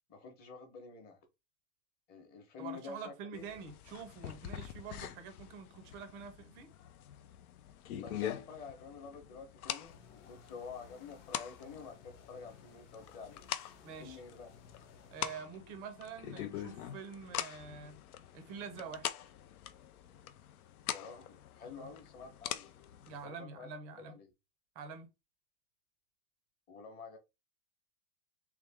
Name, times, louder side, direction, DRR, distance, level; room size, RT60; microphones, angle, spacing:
voice 1, 0.1-1.2 2.1-3.5 8.0-13.4 14.0-14.5 14.8-14.9 20.9-22.7 23.2-23.7 24.0-24.3 26.7-27.2, left 5 dB, 20° left, 0.9 m, -49 dB
voice 2, 2.6-6.7 13.8-14.2 15.1-18.0 18.3-19.1 21.8-21.9 23.1-24.1 24.8-25.1, right 6 dB, 20° right, 0.4 m, -46 dB
sound 1, 3.3-23.2, left 11 dB, 90° left, 0.7 m, -44 dB
sound 2, 9.8-15.4, left 5 dB, 55° left, 1.1 m, -60 dB
3.4 x 3.3 x 3.4 m
supercardioid pair, 160°, 42 cm